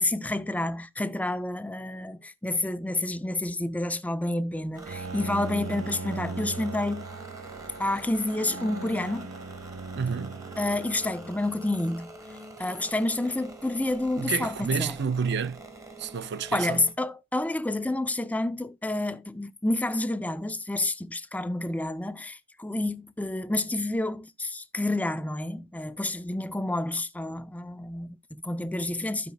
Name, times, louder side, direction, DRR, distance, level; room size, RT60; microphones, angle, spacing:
voice 1, 0.0-7.1 7.8-9.3 10.6-12.1 12.6-15.0 16.5-29.3, left 2 dB, 5° left, 0.5 m, -29 dB
sound 1, 4.7-16.9, right 1 dB, 15° right, 1.4 m, -45 dB
Bowed string instrument, 4.9-12.0, right 3 dB, 85° right, 0.8 m, -39 dB
voice 2, 9.9-10.4 14.2-15.6 16.0-16.8, right 6 dB, 55° right, 0.5 m, -29 dB
15.5 x 5.2 x 2.2 m
head